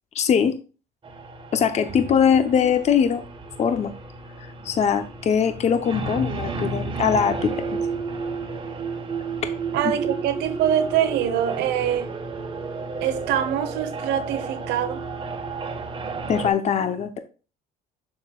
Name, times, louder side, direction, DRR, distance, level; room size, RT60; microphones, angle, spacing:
voice 1, 0.1-0.5 1.5-3.2 3.6-3.9 4.6-7.8 16.3-17.2, left 7 dB, 40° left, 0.7 m, -21 dB
sound 1, 1.0-16.5, right 4 dB, 30° right, 1.3 m, -32 dB
voice 2, 9.7-12.2 13.0-15.0, right 10 dB, 90° right, 1.0 m, -24 dB
7.1 x 6.8 x 2.3 m
cardioid pair, 110°, 17 cm